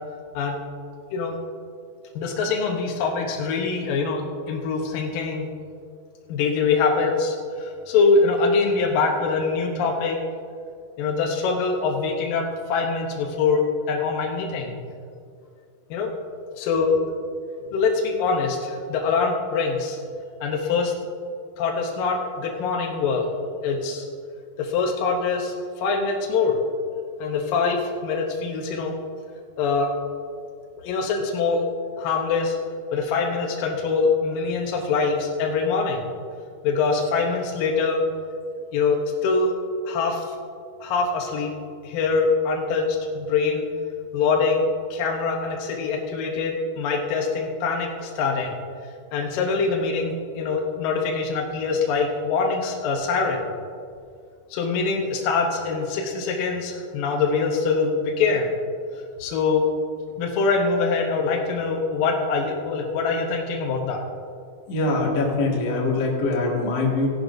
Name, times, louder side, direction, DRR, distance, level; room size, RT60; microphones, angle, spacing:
voice 1, 2.2-5.5 6.3-10.2 11.0-12.4 12.7-14.8 15.9-16.1 16.6-17.0 17.7-20.0 20.4-20.9 21.6-23.3 23.6-24.1 24.6-26.6 27.2-28.9 29.6-29.9 30.8-31.7 32.0-32.6 32.9-36.1 36.6-38.0 38.7-39.5 39.9-40.3 40.8-41.5 41.8-42.9 43.1-43.6 44.1-48.6 49.1-53.4 54.5-58.5 59.2-59.6 60.2-64.0, left 4 dB, 70° left, 0 dB, 2.3 m, -24 dB
voice 2, 64.7-67.1, left 2 dB, 50° left, -3 dB, 2.4 m, -23 dB
16.5 x 11.0 x 2.6 m, 2.3 s
omnidirectional pair, 4.6 m